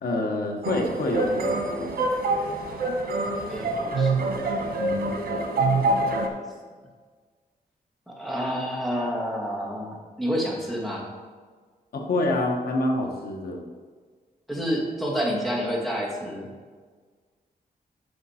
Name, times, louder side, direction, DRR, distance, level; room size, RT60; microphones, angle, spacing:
voice 1, 0.0-1.9 11.9-13.6, left 2 dB, 85° left, 1 dB, 1.4 m, -26 dB
sound 1, 0.6-6.3, right 2 dB, 90° right, 1.3 m, -25 dB
voice 2, 3.5-4.1 8.1-11.0 14.5-16.5, equal, ahead, -4 dB, 2.0 m, -28 dB
9.3 x 6.7 x 4.3 m, 1.5 s
wide cardioid pair, 150°, 15 cm